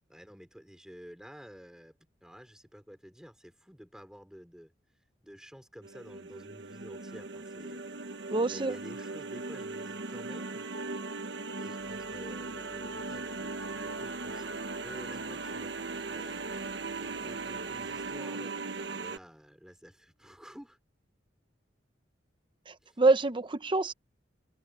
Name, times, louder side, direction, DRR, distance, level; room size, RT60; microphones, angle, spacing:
voice 1, 0.1-8.2 8.5-10.7 11.5-13.5 13.8-14.5 14.7-15.7 16.1-18.6 18.9-20.8 22.8-23.0, equal, 5° right, 4.6 m, -51 dB
sound 1, 5.8-19.2, right 3 dB, 65° right, 1.2 m, -38 dB
voice 2, 8.3-8.8 22.7-23.9, right 3 dB, 25° right, 0.8 m, -26 dB
sound 2, 11.8-18.2, left 1 dB, 55° left, 6.4 m, -60 dB
head